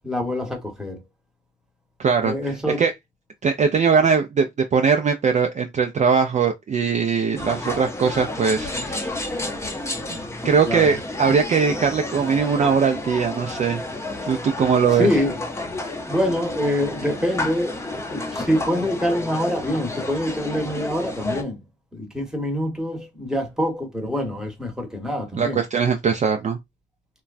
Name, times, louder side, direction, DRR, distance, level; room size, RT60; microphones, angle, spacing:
voice 1, 0.0-1.0 2.2-2.8 10.7-10.9 15.0-15.3 16.1-17.8 18.1-21.6 21.9-25.6, left 1 dB, 5° right, 1.0 m, -25 dB
voice 2, 2.0-2.9 3.4-9.2 10.1-10.2 10.4-13.8 14.2-15.2 25.3-26.6, right 6 dB, 35° right, 0.4 m, -21 dB
sound 1, 7.3-21.4, left 2 dB, 15° left, 0.6 m, -31 dB
3.0 x 2.2 x 2.4 m
cardioid pair, 90°, 20 cm